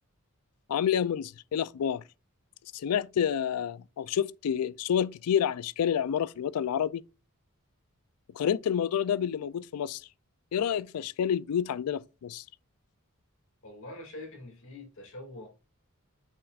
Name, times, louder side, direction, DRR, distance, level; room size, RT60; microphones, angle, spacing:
voice 1, 0.7-2.0 2.7-7.0 8.3-10.0 10.5-12.4, left 8 dB, 85° left, 0.4 m, -29 dB
voice 2, 13.6-15.5, left 1 dB, 60° left, 2.3 m, -44 dB
8.2 x 5.9 x 2.4 m
head